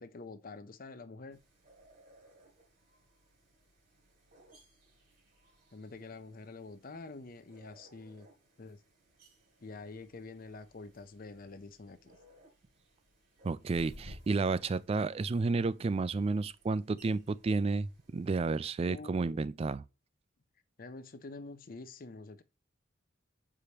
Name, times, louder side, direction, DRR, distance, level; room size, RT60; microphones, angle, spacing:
voice 1, 0.0-1.4 5.7-8.3 8.6-8.8 9.6-12.2 18.9-19.5 20.8-22.4, left 3 dB, 45° left, 0.6 m, -47 dB
sound 1, 1.3-18.3, equal, 45° right, 2.3 m, -60 dB
voice 2, 13.4-19.8, right 3 dB, 30° right, 0.3 m, -31 dB
6.7 x 4.9 x 2.9 m
head